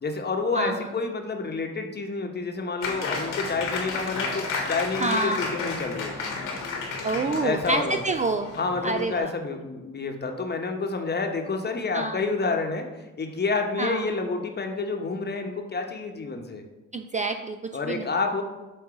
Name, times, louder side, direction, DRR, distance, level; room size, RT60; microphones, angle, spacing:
voice 1, 0.0-6.3 7.4-8.0 8.6-12.9 13.2-16.6 17.7-18.4, left 4 dB, 30° left, 4 dB, 1.0 m, -29 dB
Applause, 2.8-9.2, left 4 dB, 80° left, 1.3 m, -32 dB
voice 2, 5.0-5.4 7.0-8.6 8.8-9.3 11.9-12.2 13.8-14.1 16.9-17.6 17.9-18.0, right 2 dB, 25° right, 6 dB, 0.3 m, -27 dB
7.5 x 2.6 x 4.8 m, 1.1 s
supercardioid pair, 65°, 32 cm